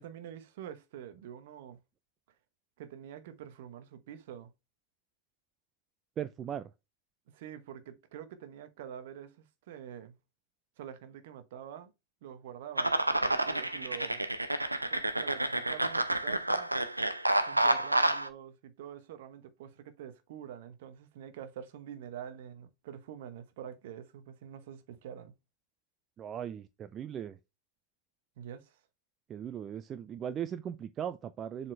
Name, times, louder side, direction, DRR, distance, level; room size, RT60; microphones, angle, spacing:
voice 1, 0.0-1.8 2.8-4.5 7.3-10.2 10.8-11.9 12.2-14.2 14.9-16.7 17.5-25.3 28.4-28.8, right 9 dB, 55° right, 1.0 m, -46 dB
voice 2, 6.2-6.7 26.2-27.4 29.3-31.7, right 9 dB, 25° right, 0.4 m, -38 dB
sound 1, 12.8-18.3, right 1 dB, 85° right, 0.7 m, -29 dB
7.4 x 4.2 x 3.3 m
figure-of-eight pair, 90°, 0 cm